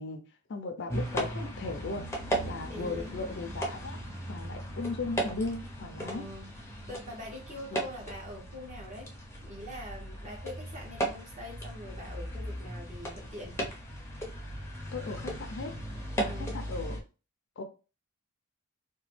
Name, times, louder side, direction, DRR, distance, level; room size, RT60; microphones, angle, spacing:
voice 1, 0.0-2.1 2.4-6.2 14.9-15.8 16.2-17.0 17.6-17.7, left 3 dB, 55° left, 0.4 m, -37 dB
sound 1, 0.9-17.0, right 1 dB, 10° left, 0.6 m, -37 dB
voice 2, 2.7-3.1 6.0-6.5 6.9-9.1 9.4-13.6 16.3-16.5, left 1 dB, 35° right, 1.1 m, -43 dB
2.9 x 2.2 x 3.2 m
head